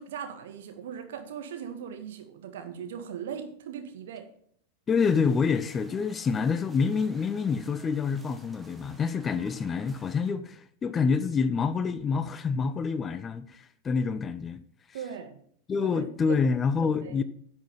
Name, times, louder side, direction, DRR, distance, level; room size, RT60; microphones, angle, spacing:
voice 1, 0.0-4.3 9.3-9.4 14.9-15.4 15.8-16.5 16.8-17.2, right 8 dB, 55° right, 1.7 m, -39 dB
voice 2, 4.9-14.6 15.7-17.2, left 5 dB, 20° left, 0.6 m, -27 dB
sound 1, 5.0-10.3, right 2 dB, 10° right, 1.3 m, -55 dB
10.5 x 6.4 x 5.6 m
figure-of-eight pair, 90°, 0 cm